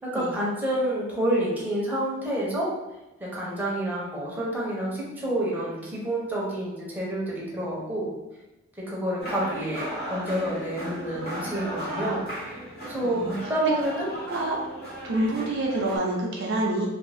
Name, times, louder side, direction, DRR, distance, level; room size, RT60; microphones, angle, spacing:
voice 1, 0.0-2.7 3.2-8.1 8.8-12.2 12.8-14.1, right 1 dB, 10° right, -6 dB, 0.7 m, -28 dB
sound 1, 9.2-16.0, equal, 50° left, 1.3 m, -36 dB
voice 2, 13.0-13.3 14.3-14.6 15.0-16.9, right 1 dB, 55° right, -1 dB, 0.5 m, -27 dB
2.9 x 2.6 x 3.3 m, 0.98 s
head